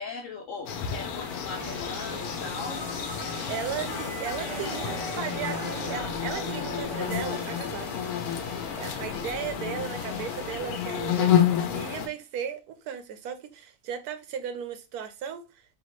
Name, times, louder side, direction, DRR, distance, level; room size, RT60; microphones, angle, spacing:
voice 1, 0.0-2.8 3.9-4.0 9.0-9.8, left 4 dB, 65° left, 1.0 m, -39 dB
sound 1, 0.7-12.1, left 9 dB, 90° left, 1.1 m, -30 dB
sound 2, 0.9-12.1, left 1 dB, 40° left, 1.3 m, -45 dB
sound 3, 1.6-8.0, right 4 dB, 50° right, 0.3 m, -41 dB
voice 2, 3.5-7.9 8.8-11.3 11.6-15.4, right 8 dB, 85° right, 1.1 m, -36 dB
4.1 x 2.9 x 3.0 m
omnidirectional pair, 1.6 m